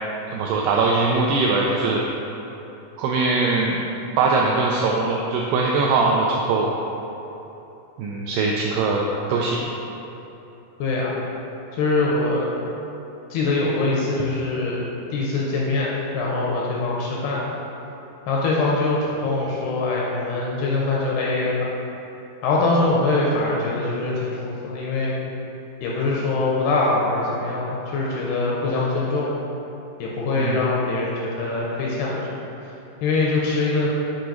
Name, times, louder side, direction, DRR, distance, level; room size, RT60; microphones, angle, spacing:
voice 1, 0.3-2.1 3.0-3.8 4.2-6.7 8.0-9.7 30.4-30.6, right 3 dB, 85° right, -2 dB, 2.3 m, -21 dB
voice 2, 10.8-11.1 11.7-12.5 13.3-17.6 18.3-21.6 22.4-25.1 25.8-29.3 30.0-32.4 33.0-33.9, left 3 dB, 80° left, -4 dB, 2.5 m, -23 dB
7.1 x 4.7 x 3.9 m, 3.0 s
omnidirectional pair, 5.2 m